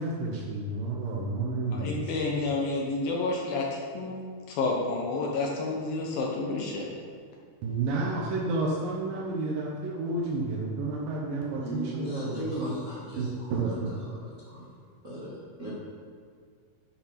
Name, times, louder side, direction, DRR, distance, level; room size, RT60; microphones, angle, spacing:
voice 1, 0.0-2.3 7.6-12.7 13.2-13.9, right 3 dB, 80° right, -2 dB, 2.0 m, -31 dB
voice 2, 1.8-4.2 4.5-6.9, left 3 dB, 75° left, -1 dB, 2.1 m, -30 dB
voice 3, 11.6-13.8 14.1-14.7 15.0-15.3 15.6-15.7, equal, 55° right, -9 dB, 0.8 m, -37 dB
8.9 x 6.7 x 5.8 m, 2.1 s
omnidirectional pair, 5.4 m